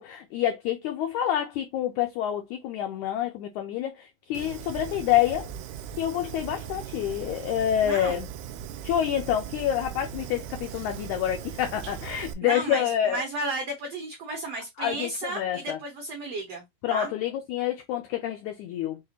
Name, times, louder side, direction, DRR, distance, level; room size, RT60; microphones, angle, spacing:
voice 1, 0.0-5.5 6.0-8.3 8.8-13.2 14.8-15.8 16.8-19.0, left 11 dB, 90° left, 1.6 m, -27 dB
Fire, 4.3-12.3, right 9 dB, 85° right, 1.7 m, -39 dB
voice 2, 7.8-8.2 12.4-16.6 16.9-17.1, right 2 dB, 70° right, 1.4 m, -33 dB
6.0 x 2.4 x 2.8 m
omnidirectional pair, 4.2 m